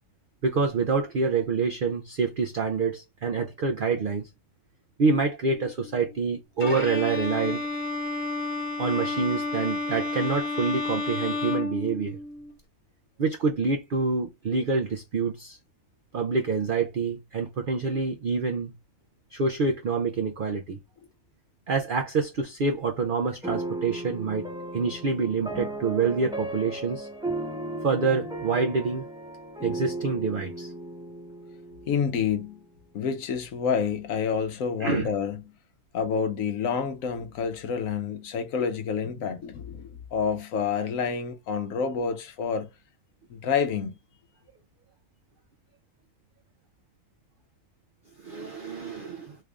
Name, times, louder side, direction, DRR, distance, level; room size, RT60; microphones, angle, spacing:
voice 1, 0.4-4.3 5.0-7.6 8.8-12.2 13.2-15.6 16.1-18.7 19.3-20.8 21.7-24.5 24.7-27.1 27.8-29.1 29.6-30.7 34.8-35.1 48.2-49.4, right 4 dB, 85° right, 0.4 m, -27 dB
Bowed string instrument, 6.6-12.5, left 2 dB, 20° left, 0.9 m, -31 dB
sound 1, 23.4-32.6, right 2 dB, 5° right, 0.6 m, -36 dB
voice 2, 31.9-32.6 32.9-35.4 35.9-42.7 43.3-44.0, left 6 dB, 70° left, 1.0 m, -28 dB
3.3 x 2.4 x 3.3 m
omnidirectional pair, 1.6 m